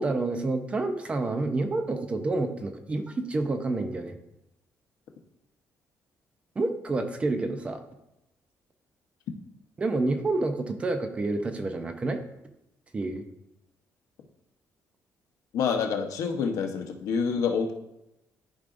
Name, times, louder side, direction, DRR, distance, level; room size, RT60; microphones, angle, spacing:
voice 1, 0.0-4.2 6.6-7.8 9.8-12.2 12.9-13.2, right 2 dB, 20° right, 7 dB, 0.6 m, -28 dB
voice 2, 15.5-17.7, left 6 dB, 80° left, 3 dB, 1.0 m, -27 dB
13.0 x 4.9 x 2.6 m, 0.87 s
cardioid pair, 175°, 6 cm